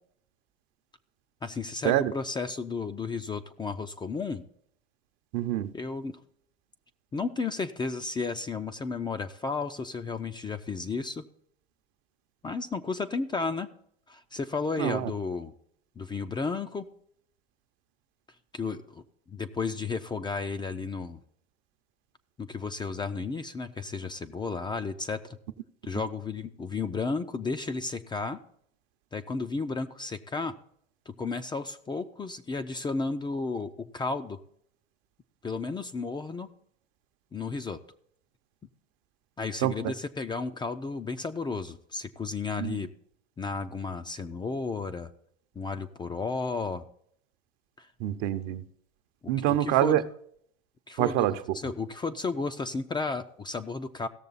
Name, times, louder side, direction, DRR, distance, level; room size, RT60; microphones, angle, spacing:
voice 1, 1.4-4.4 5.7-6.2 7.1-11.2 12.4-13.7 14.1-15.5 16.0-16.9 18.5-21.2 22.4-25.4 25.8-28.4 29.1-30.5 31.1-34.4 35.4-36.5 37.3-37.8 39.4-42.9 43.4-45.1 45.6-46.9 47.8-47.9 49.5-50.0 50.9-51.4 51.6-54.1, left 4 dB, 15° left, 0.5 m, -33 dB
voice 2, 5.3-5.7 14.8-15.1 39.6-39.9 42.5-42.9 48.0-48.6 49.3-50.0 51.0-51.6, right 13 dB, 55° right, 0.8 m, -26 dB
16.5 x 6.7 x 4.0 m
hypercardioid pair, 100°, 31 cm